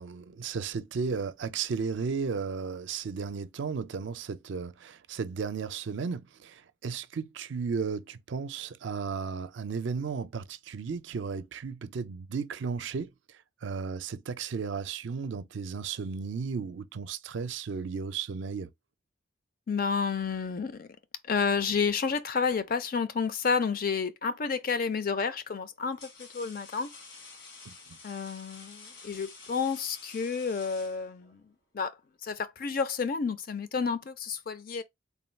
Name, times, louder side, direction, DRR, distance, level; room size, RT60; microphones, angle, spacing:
voice 1, 0.0-13.1 13.6-18.7 27.7-27.8, right 5 dB, 65° right, 0.4 m, -34 dB
voice 2, 19.7-20.9 21.3-26.9 28.0-31.4 31.7-31.9 32.2-34.8, left 5 dB, 45° left, 0.5 m, -30 dB
sound 1, 24.3-24.7 25.5-31.4, left 4 dB, 75° left, 1.3 m, -50 dB
3.5 x 2.3 x 4.3 m
head